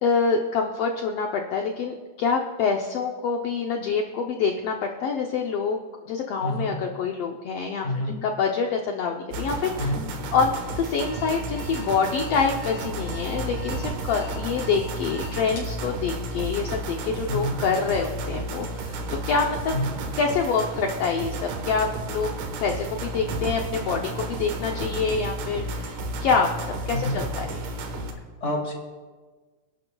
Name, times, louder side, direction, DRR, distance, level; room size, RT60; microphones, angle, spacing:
voice 1, 0.0-5.8 6.1-9.9 10.3-19.7 20.2-22.3 22.6-26.6 26.9-27.4, left 5 dB, 85° left, 2 dB, 1.3 m, -26 dB
voice 2, 6.4-6.8 7.8-8.2 9.8-10.0 17.3-17.5 19.7-19.9 26.9-27.2 28.4-28.7, left 1 dB, 25° left, 0 dB, 1.8 m, -27 dB
sound 1, 9.3-28.1, right 2 dB, 75° right, 2.7 m, -32 dB
Alarm, 11.1-15.8, left 2 dB, 55° left, 4.8 m, -42 dB
27.5 x 11.5 x 2.3 m, 1.4 s
omnidirectional pair, 3.7 m